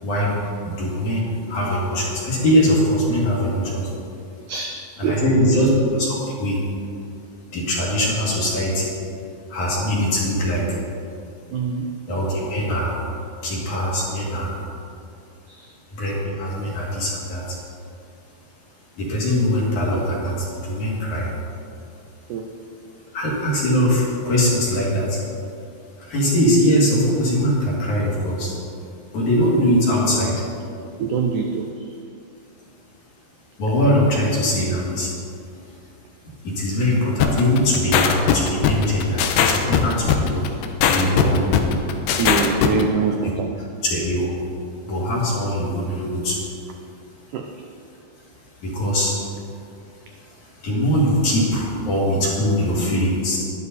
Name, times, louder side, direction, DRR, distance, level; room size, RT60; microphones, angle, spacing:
voice 1, 0.0-3.8 5.0-6.6 7.5-8.9 9.5-10.8 12.1-13.0 13.4-14.6 15.9-17.6 19.0-21.3 23.1-25.2 26.0-28.5 29.1-30.4 33.6-35.1 36.4-40.4 40.8-41.7 43.8-44.4 44.8-46.5 48.6-49.2 49.9-53.4, equal, 55° left, -5 dB, 3.5 m, -21 dB
voice 2, 4.5-5.7 11.5-11.9 15.5-15.7 22.3-22.5 31.0-31.9 42.2-43.5 47.3-47.5, right 5 dB, 90° right, 3 dB, 1.7 m, -24 dB
sound 1, 37.2-42.8, left 9 dB, 80° left, 2.5 m, -19 dB
11.5 x 11.0 x 4.1 m, 2.5 s
omnidirectional pair, 4.5 m